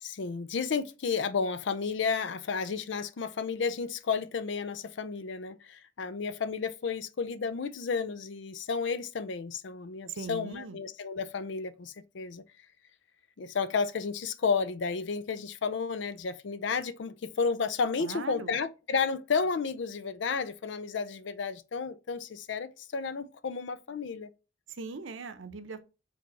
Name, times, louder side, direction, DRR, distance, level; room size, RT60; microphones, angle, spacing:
voice 1, 0.0-12.4 13.4-24.3, left 5 dB, 65° left, 0.5 m, -32 dB
voice 2, 10.1-10.8 18.0-18.6 24.7-25.8, right 3 dB, 80° right, 0.7 m, -40 dB
5.0 x 3.4 x 5.5 m
head